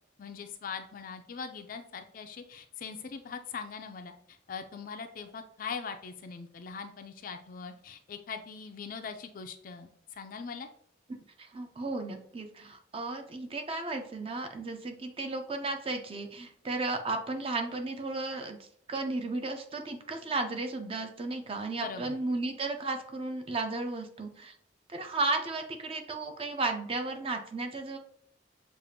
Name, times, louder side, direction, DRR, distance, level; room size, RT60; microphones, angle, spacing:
voice 1, 0.2-10.7 21.8-22.2, left 5 dB, 50° left, 6 dB, 0.4 m, -41 dB
voice 2, 11.4-18.6 18.9-24.5 24.9-28.0, right 3 dB, 30° right, 5 dB, 0.5 m, -34 dB
6.6 x 2.4 x 2.7 m, 0.66 s
head